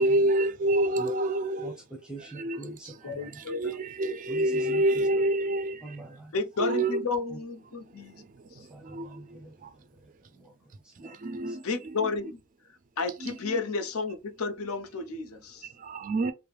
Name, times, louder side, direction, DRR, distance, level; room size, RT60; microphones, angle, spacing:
voice 1, 0.0-1.7 2.4-2.8 3.2-6.1 6.6-7.0 8.1-8.3 8.5-9.2 9.6-9.7 11.0-12.2 13.2-13.6 15.8-16.3, right 1 dB, 35° right, 0.3 m, -28 dB
voice 2, 2.0-3.4 4.3-5.1 5.8-6.3 7.3-7.4 8.7-11.2 11.5-11.6, right 2 dB, 5° right, 0.7 m, -44 dB
voice 3, 3.0-3.7 6.3-8.1 11.6-12.4 13.0-15.7, left 4 dB, 80° left, 0.6 m, -32 dB
3.2 x 2.0 x 2.4 m
head